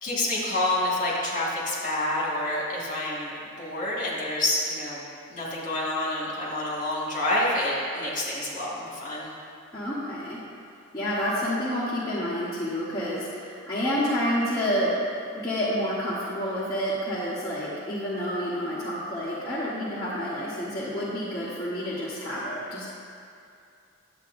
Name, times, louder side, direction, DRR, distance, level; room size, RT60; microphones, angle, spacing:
voice 1, 0.0-3.3 3.6-5.0 5.3-9.3, left 1 dB, 40° left, -6 dB, 1.8 m, -28 dB
voice 2, 9.7-10.4 10.9-14.9 15.4-22.9, equal, 20° left, -11 dB, 1.1 m, -29 dB
10.5 x 7.7 x 2.6 m, 2.5 s
head